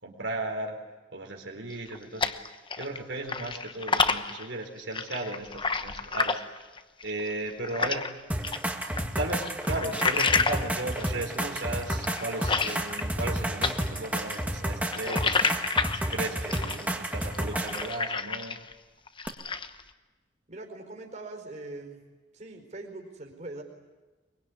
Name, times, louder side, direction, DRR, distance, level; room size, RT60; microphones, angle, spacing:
voice 1, 0.0-0.8 1.1-2.3 2.8-6.4 7.0-8.0 8.9-15.5 15.9-18.6, right 2 dB, 85° right, 1 dB, 4.3 m, -35 dB
sound 1, 1.7-3.0 3.3-8.1 8.4-13.3 13.6-18.7 19.1-19.8, left 4 dB, 30° left, 1.0 m, -30 dB
sound 2, 8.3-17.9 19.3-19.4, right 1 dB, 10° right, 2.0 m, -31 dB
voice 2, 20.5-22.0 22.3-23.6, right 2 dB, 40° right, 1 dB, 4.7 m, -41 dB
23.5 x 23.0 x 9.7 m, 1.2 s
head